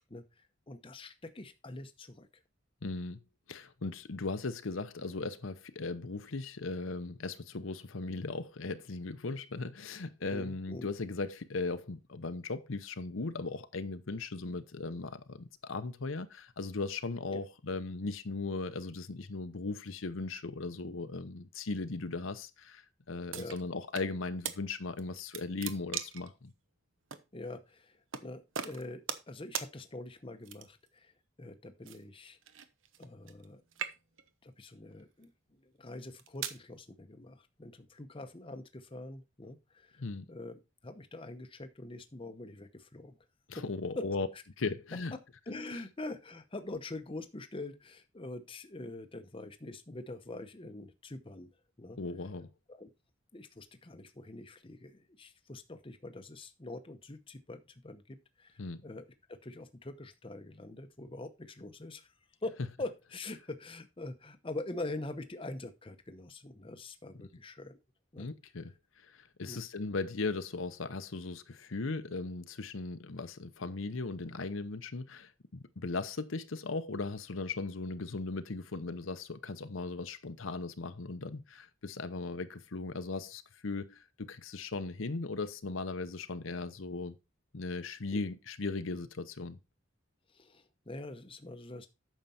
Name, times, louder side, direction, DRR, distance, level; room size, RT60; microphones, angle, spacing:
voice 1, 0.0-2.3 10.3-10.9 17.3-17.4 23.3-23.6 27.3-32.4 33.0-33.6 34.4-40.0 40.3-43.2 43.5-43.7 43.9-44.1 44.3-44.4 45.5-52.0 52.7-52.9 53.3-62.1 62.4-67.8 68.1-68.3 69.4-69.6 88.1-88.2 90.3-91.9, left 2 dB, 25° left, 0.8 m, -44 dB
voice 2, 2.8-3.2 3.5-26.5 40.0-40.2 43.5-44.3 44.6-45.1 52.0-52.5 58.6-58.8 68.2-68.7 69.0-87.2 87.5-89.6, left 3 dB, 70° left, 0.8 m, -38 dB
sound 1, 23.3-24.1 24.4-24.6 25.0-26.3 27.1-27.2 28.1-28.3 28.5-29.3 29.5-29.7 30.4-30.9 31.8-33.5 33.7-34.3 35.0-35.2 35.9-36.6, right 8 dB, 70° right, 1.0 m, -39 dB
9.1 x 6.6 x 4.2 m
head